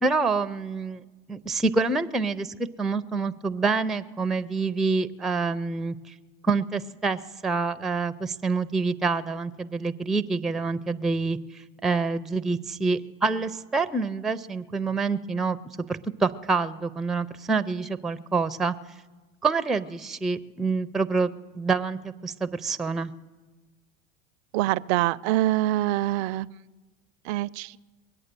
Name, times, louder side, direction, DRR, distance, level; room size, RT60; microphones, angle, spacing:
voice 1, 0.0-1.0 1.3-6.1 6.4-15.6 15.9-18.7 19.4-23.1, right 4 dB, ahead, 13 dB, 0.4 m, -27 dB
voice 2, 24.5-26.5 27.2-27.8, right 16 dB, 65° right, 18 dB, 0.5 m, -25 dB
22.0 x 8.6 x 6.7 m, 1.2 s
hypercardioid pair, 95°, 35 cm